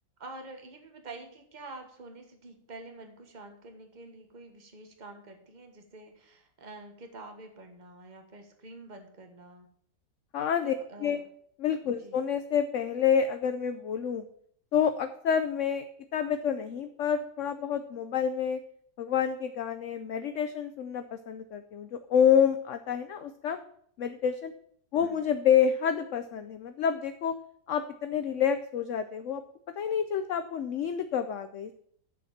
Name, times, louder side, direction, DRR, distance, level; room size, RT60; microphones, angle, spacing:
voice 1, 0.2-9.7 10.5-11.3 11.8-12.2 24.9-25.3, right 2 dB, 30° right, 4 dB, 1.5 m, -47 dB
voice 2, 10.3-10.7 11.0-11.2 11.6-14.2 14.7-15.9 16.1-18.6 19.0-23.6 24.0-24.5 24.9-27.3 27.7-29.4 29.8-31.7, left 8 dB, 65° left, 10 dB, 0.8 m, -28 dB
7.1 x 7.1 x 7.2 m, 0.65 s
omnidirectional pair, 1.7 m